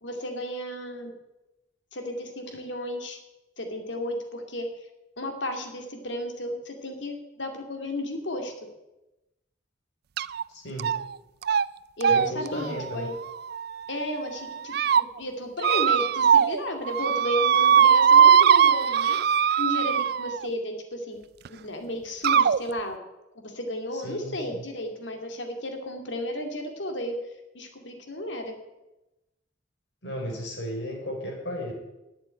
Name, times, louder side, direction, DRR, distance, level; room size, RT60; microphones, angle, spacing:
voice 1, 0.0-1.1 1.9-3.2 3.6-4.7 5.2-8.5 12.0-13.2 13.9-19.2 19.6-21.2 21.5-23.0 23.4-27.2 27.5-28.5, left 1 dB, 90° left, 4 dB, 2.5 m, -33 dB
sound 1, 10.2-10.4 10.8-11.2 11.4-11.6 12.0-13.9 14.5-15.0 15.6-16.6 16.9-20.5 21.4-21.5 22.2-22.6, right 8 dB, 60° right, 0.4 m, -20 dB
voice 2, 10.5-10.9 12.1-13.1 23.9-24.6 30.0-31.7, equal, 70° left, 1 dB, 4.5 m, -34 dB
12.0 x 8.3 x 8.9 m, 0.99 s
head